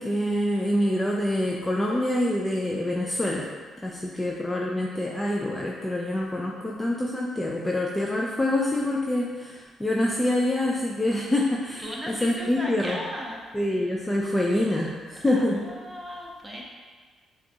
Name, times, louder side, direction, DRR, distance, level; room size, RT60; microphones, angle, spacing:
voice 1, 0.0-3.5 3.8-13.0 13.5-15.7, left 1 dB, 15° left, -2 dB, 0.4 m, -26 dB
voice 2, 3.9-4.3 11.8-13.4 15.3-15.4 15.7-16.6, equal, 10° right, -3 dB, 0.9 m, -37 dB
5.8 x 2.4 x 2.7 m, 1.4 s
cardioid pair, 90°, 0 cm